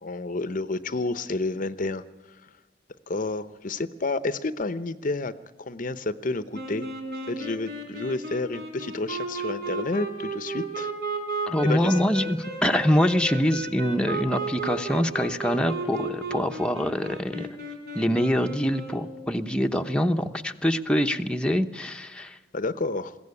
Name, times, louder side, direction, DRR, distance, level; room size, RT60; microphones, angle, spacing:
voice 1, 0.0-2.0 3.1-5.3 5.6-6.9 7.3-10.9 11.6-12.0 12.6-12.7 22.5-23.2, left 3 dB, 50° left, 14 dB, 0.8 m, -30 dB
sound 1, 6.5-19.2, right 3 dB, 65° right, 4.0 m, -34 dB
voice 2, 11.5-17.5 17.9-22.4, equal, 5° left, 4 dB, 0.9 m, -24 dB
21.5 x 16.5 x 9.7 m, 1.2 s
head